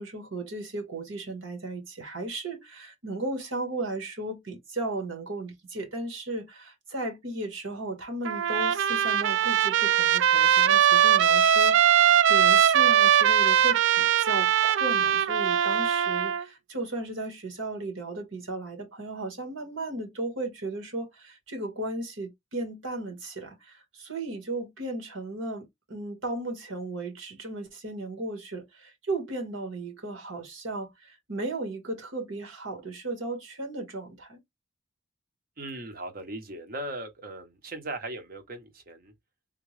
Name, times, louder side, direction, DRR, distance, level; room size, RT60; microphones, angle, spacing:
voice 1, 0.0-34.4, right 2 dB, 80° right, 1.5 m, -35 dB
Trumpet, 8.3-16.4, right 9 dB, 60° right, 0.3 m, -21 dB
voice 2, 35.6-39.1, right 1 dB, 45° right, 0.9 m, -38 dB
3.5 x 2.3 x 3.2 m
head